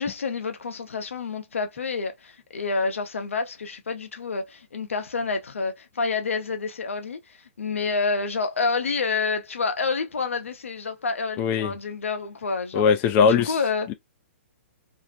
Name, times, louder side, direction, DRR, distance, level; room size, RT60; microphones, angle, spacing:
voice 1, 0.0-12.8 13.2-13.9, left 4 dB, 90° left, 0.8 m, -28 dB
voice 2, 11.4-11.7 12.7-13.5, left 6 dB, 30° left, 0.4 m, -20 dB
2.6 x 2.0 x 2.4 m
hypercardioid pair, 130°, 7 cm